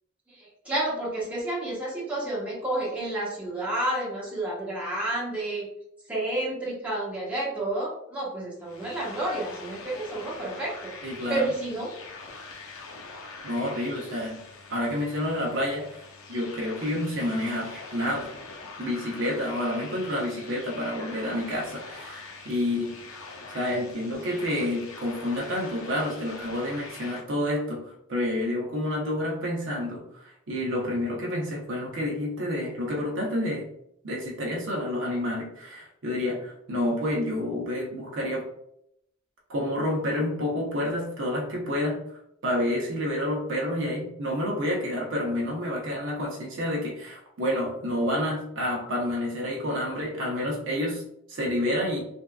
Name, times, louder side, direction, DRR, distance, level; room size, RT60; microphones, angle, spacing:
voice 1, 0.4-5.7 6.1-10.9 11.3-11.9, right 1 dB, 5° right, -7 dB, 1.1 m, -30 dB
sound 1, 8.6-27.2, left 3 dB, 90° left, 0.6 m, -44 dB
voice 2, 11.0-11.5 13.4-14.4 14.7-16.0 16.3-18.3 18.8-22.9 23.5-33.7 34.0-38.5 39.5-42.0 42.4-51.0 51.3-52.0, left 1 dB, 60° right, -2 dB, 0.7 m, -29 dB
3.4 x 2.7 x 2.2 m, 0.75 s
head